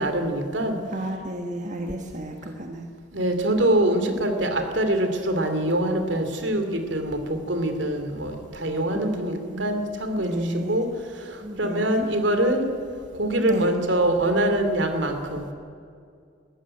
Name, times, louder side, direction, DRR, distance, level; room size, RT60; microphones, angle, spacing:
voice 1, 0.0-0.8 3.1-10.3 10.7-10.9 11.6-12.7 13.1-15.5, right 1 dB, 70° right, 6 dB, 2.8 m, -24 dB
voice 2, 0.9-2.9 8.9-9.7 10.1-10.8 11.4-12.1 13.4-13.8, right 1 dB, 40° right, 3 dB, 1.4 m, -32 dB
20.5 x 14.5 x 9.9 m, 2.3 s
head